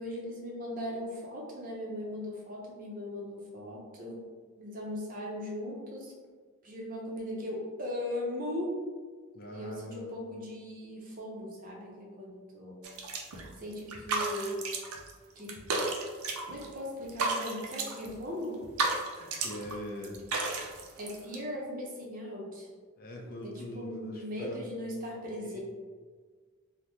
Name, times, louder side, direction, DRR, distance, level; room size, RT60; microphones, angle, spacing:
voice 1, 0.0-4.2 4.6-6.1 6.6-8.8 9.5-12.8 13.6-14.6 15.4-15.6 16.5-18.6 21.0-22.7 23.4-25.6, left 1 dB, 40° right, -2 dB, 0.6 m, -38 dB
voice 2, 9.3-10.1 19.2-20.2 23.0-24.6 25.4-25.6, left 1 dB, 45° left, 0 dB, 0.4 m, -42 dB
sound 1, 12.8-13.5 13.7-15.1 15.4-16.7 17.0-18.1 18.5-19.8 20.0-21.4, right 3 dB, 85° right, 0.5 m, -33 dB
3.4 x 2.1 x 2.9 m, 1.5 s
head